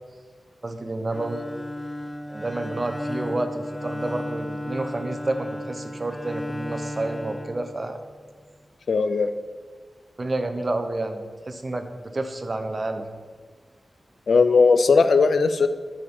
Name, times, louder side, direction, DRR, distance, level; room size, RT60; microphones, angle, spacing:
voice 1, 0.6-1.5 2.3-8.0 10.2-13.1, right 2 dB, 35° right, 7 dB, 0.7 m, -29 dB
Bowed string instrument, 1.1-8.2, left 1 dB, 10° left, 0.5 m, -34 dB
voice 2, 8.9-9.3 14.3-15.7, left 4 dB, 75° left, 11 dB, 0.4 m, -18 dB
8.2 x 5.0 x 4.4 m, 1.5 s
wide cardioid pair, 90°, 0 cm